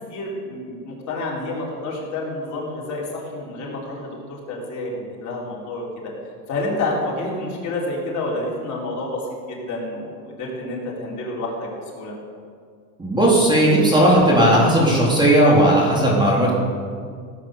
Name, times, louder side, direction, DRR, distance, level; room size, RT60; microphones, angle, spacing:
voice 1, 0.1-5.9 6.5-12.1, left 2 dB, 35° left, -3 dB, 4.2 m, -29 dB
voice 2, 13.0-16.5, right 1 dB, 10° right, -4 dB, 3.7 m, -16 dB
17.0 x 8.9 x 6.7 m, 2.1 s
supercardioid pair, 125°, 48 cm